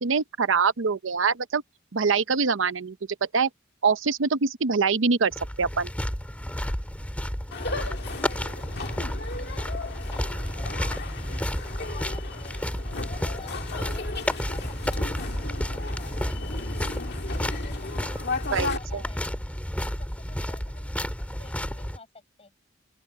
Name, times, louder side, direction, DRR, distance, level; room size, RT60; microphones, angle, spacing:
voice 1, 0.0-1.6 1.9-3.0 3.3-3.5 3.8-5.3 5.6-5.9 18.5-19.0, right 5 dB, 80° right, 0.8 m, -24 dB
sound 1, 5.3-22.0, equal, 10° left, 2.3 m, -31 dB
voice 2, 7.4-8.4 8.8-11.4 11.8-14.1 14.5-16.7 17.3-19.4 20.0-22.1 22.4-22.5, left 3 dB, 30° left, 6.2 m, -51 dB
sound 2, 7.5-18.8, left 3 dB, 60° left, 2.0 m, -36 dB
open air
head